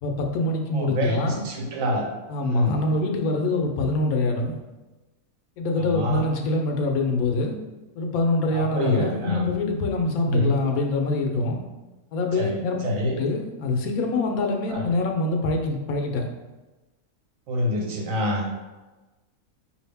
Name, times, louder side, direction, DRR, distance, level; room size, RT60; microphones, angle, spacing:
voice 1, 0.0-1.5 2.3-4.6 5.6-7.6 8.0-11.6 12.1-12.8 13.2-16.3, left 2 dB, 75° left, 2 dB, 1.0 m, -25 dB
voice 2, 0.7-2.1 2.4-2.8 5.9-6.2 8.5-9.5 10.3-10.6 12.4-12.6 12.8-13.2 14.7-14.8 17.5-18.5, equal, 65° right, 0 dB, 1.1 m, -26 dB
4.9 x 2.7 x 3.4 m, 1.1 s
omnidirectional pair, 1.6 m